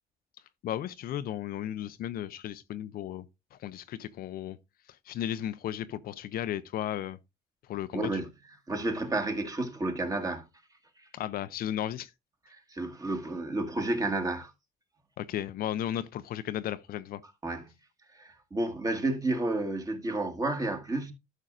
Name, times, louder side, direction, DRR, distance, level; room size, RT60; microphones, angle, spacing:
voice 1, 0.6-3.2 3.5-4.6 5.1-7.2 7.7-8.2 11.1-12.1 15.2-17.2, left 11 dB, 60° left, 0.6 m, -34 dB
voice 2, 7.9-8.3 8.7-10.5 11.0-11.1 12.5-14.5 17.4-17.7 18.1-21.1, right 2 dB, 20° right, 1.7 m, -31 dB
12.5 x 6.3 x 2.4 m
cardioid pair, 110°, 17 cm